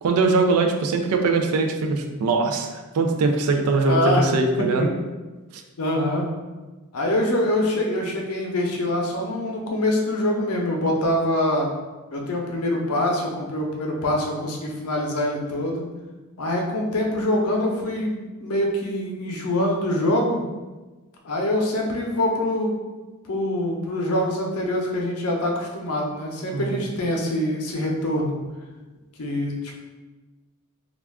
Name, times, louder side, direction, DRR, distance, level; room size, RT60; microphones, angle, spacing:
voice 1, 0.0-4.9 26.5-26.8, right 3 dB, 75° right, 5 dB, 0.4 m, -21 dB
voice 2, 3.7-4.2 4.6-4.7 5.8-6.2 6.9-11.7 12.1-15.8 16.4-20.4 21.2-22.8 23.3-28.4 29.2-29.5, left 1 dB, 80° left, 0 dB, 0.6 m, -24 dB
2.4 x 2.3 x 3.4 m, 1.2 s
head